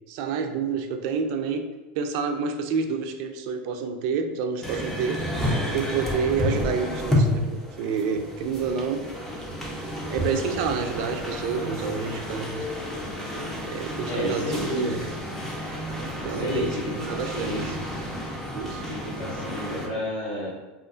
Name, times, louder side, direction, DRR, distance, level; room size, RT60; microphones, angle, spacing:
voice 1, 0.1-1.7 2.0-5.2 5.7-9.0 10.1-12.7 13.7-14.5 14.8-15.0 16.2-16.7 17.0-17.7 18.5-18.9, right 5 dB, 60° right, 6 dB, 0.3 m, -28 dB
sound 1, 4.6-19.9, left 1 dB, 5° left, 0.5 m, -30 dB
voice 2, 14.1-15.1 16.2-17.8 18.9-20.5, equal, 65° left, -7 dB, 0.9 m, -30 dB
2.4 x 2.4 x 2.3 m, 1.2 s
supercardioid pair, 130°, 6 cm